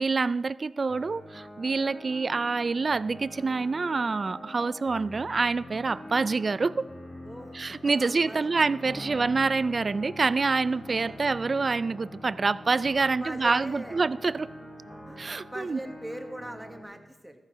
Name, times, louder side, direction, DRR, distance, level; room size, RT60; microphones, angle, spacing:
voice 1, 0.0-6.8 7.5-14.5 15.2-15.8, right 4 dB, 45° right, 0.4 m, -26 dB
sound 1, 0.9-16.8, left 1 dB, 60° left, 3.7 m, -44 dB
voice 2, 7.2-8.5 9.0-9.2 10.9-11.2 13.0-14.0 15.1-17.4, right 1 dB, 5° right, 1.4 m, -42 dB
14.0 x 7.3 x 5.1 m
cardioid pair, 65°, 0 cm